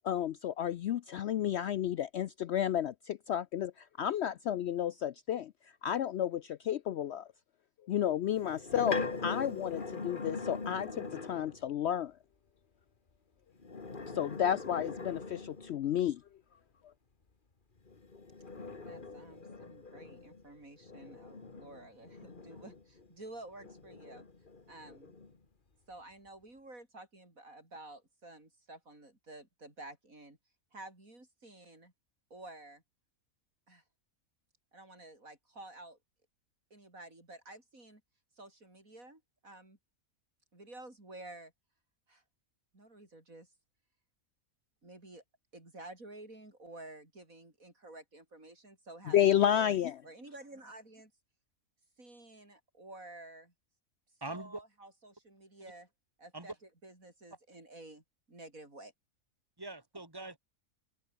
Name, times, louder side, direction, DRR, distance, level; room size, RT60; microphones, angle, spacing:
voice 1, 0.0-5.5 5.8-7.3 7.9-12.1 14.1-16.2 49.1-49.9, left 10 dB, 65° left, 0.7 m, -31 dB
sound 1, 8.3-11.6 13.6-15.9 17.9-23.1 23.6-25.4, left 3 dB, 35° left, 2.0 m, -42 dB
voice 2, 18.8-24.3 24.7-25.2 25.9-30.4 30.7-31.9 32.3-32.8 33.7-33.8 34.7-36.0 36.7-38.0 38.4-39.8 40.5-41.5 42.1-42.2 42.7-43.5 44.8-45.2 45.5-49.7 50.0-51.1 52.0-53.5 54.3-55.9 56.2-56.5 56.8-58.9, right 2 dB, 70° right, 7.1 m, -51 dB
voice 3, 54.2-54.6 56.3-56.5 59.6-60.4, right 2 dB, 15° right, 3.4 m, -42 dB
open air
omnidirectional pair, 1.5 m